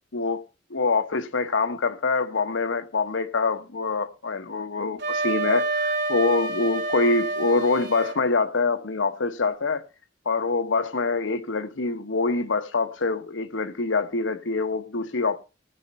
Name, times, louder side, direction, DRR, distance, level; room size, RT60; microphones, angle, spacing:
voice 1, 0.1-0.4 0.7-9.8 10.2-15.4, left 3 dB, 80° left, 1.0 m, -25 dB
Wind instrument woodwind instrument, 5.0-8.2, right 3 dB, 65° right, 1.4 m, -28 dB
18.0 x 6.5 x 4.3 m
head